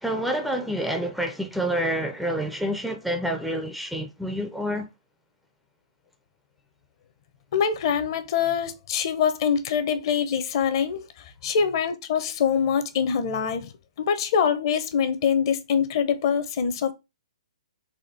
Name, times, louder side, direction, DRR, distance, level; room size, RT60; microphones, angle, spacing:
voice 1, 0.0-4.9, equal, ahead, 0.4 m, -28 dB
voice 2, 7.5-11.0 11.4-13.7 14.0-16.9, left 7 dB, 45° left, 0.7 m, -24 dB
4.2 x 2.9 x 4.1 m
hypercardioid pair, 155°, 3 cm